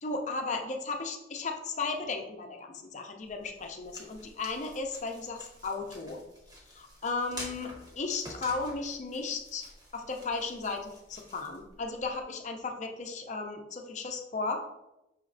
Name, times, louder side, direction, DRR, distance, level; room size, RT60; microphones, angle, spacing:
voice 1, 0.0-6.2 6.7-9.6 9.9-14.7, left 3 dB, 40° left, 4 dB, 0.5 m, -35 dB
sound 1, 3.2-12.2, equal, 20° right, 1.0 m, -49 dB
5.6 x 3.1 x 2.6 m, 0.90 s
head